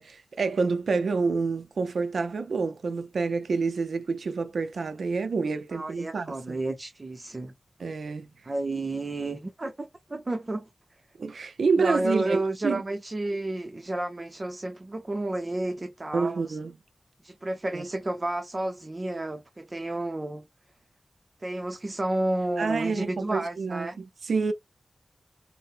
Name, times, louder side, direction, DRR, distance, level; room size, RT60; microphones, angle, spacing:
voice 1, 0.0-6.6 7.8-8.3 11.2-12.8 16.1-16.7 17.7-17.8 22.6-24.5, right 4 dB, 80° right, 0.4 m, -28 dB
voice 2, 5.7-7.5 8.4-10.7 11.8-16.5 17.2-20.4 21.4-24.0, right 2 dB, 35° right, 0.6 m, -31 dB
3.7 x 2.0 x 2.4 m
wide cardioid pair, 90°, 0 cm